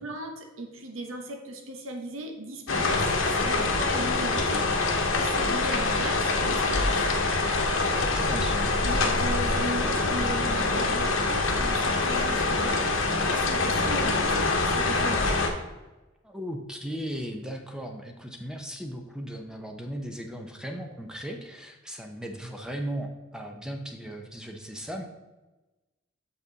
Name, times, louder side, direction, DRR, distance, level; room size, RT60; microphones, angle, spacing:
voice 1, 0.0-4.7 5.1-7.0 8.3-12.9 13.2-15.3, right 1 dB, 80° right, 4 dB, 1.0 m, -37 dB
sound 1, 2.7-15.5, left 3 dB, 75° left, 1.1 m, -25 dB
voice 2, 8.0-8.7 16.2-25.0, equal, 5° right, 3 dB, 0.6 m, -37 dB
6.6 x 5.9 x 4.0 m, 1.1 s
head